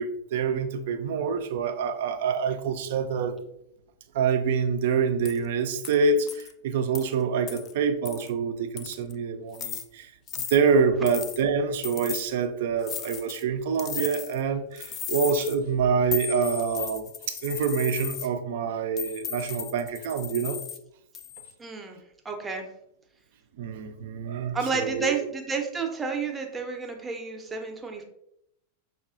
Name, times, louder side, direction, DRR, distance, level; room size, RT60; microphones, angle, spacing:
voice 1, 0.0-3.3 4.1-10.1 10.4-20.6 23.6-25.2, right 5 dB, 55° right, 8 dB, 0.4 m, -26 dB
sound 1, 5.2-5.4 5.8-6.0 6.3-6.5 6.9-7.0 7.5-7.7 8.1-8.3 8.8-9.1 9.5-9.8 10.3-10.6 11.1-11.4 11.8-12.3 12.8-13.4 13.8-14.4 14.8-15.6 16.1-18.3 19.0-20.8 21.1-21.5, left 8 dB, 30° left, 0.3 m, -35 dB
voice 2, 21.6-22.0 22.2-22.7 24.5-28.0, right 5 dB, 15° right, 2 dB, 0.6 m, -30 dB
5.3 x 2.4 x 2.4 m, 0.78 s
figure-of-eight pair, 90°, 0 cm